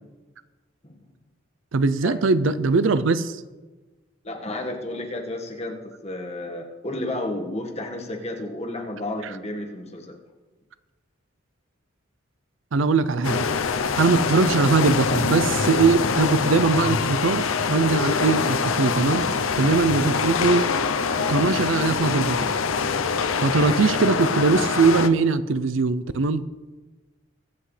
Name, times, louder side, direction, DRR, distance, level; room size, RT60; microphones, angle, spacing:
voice 1, 1.7-3.4 12.7-13.5 14.0-19.3 19.6-20.7 21.3-22.5 23.4-26.4, right 4 dB, 65° right, 15 dB, 0.5 m, -21 dB
voice 2, 4.2-10.1, left 1 dB, 30° left, 0 dB, 1.7 m, -32 dB
sound 1, 13.2-25.1, left 5 dB, 80° left, 0.7 m, -24 dB
23.0 x 7.8 x 3.3 m, 1.3 s
head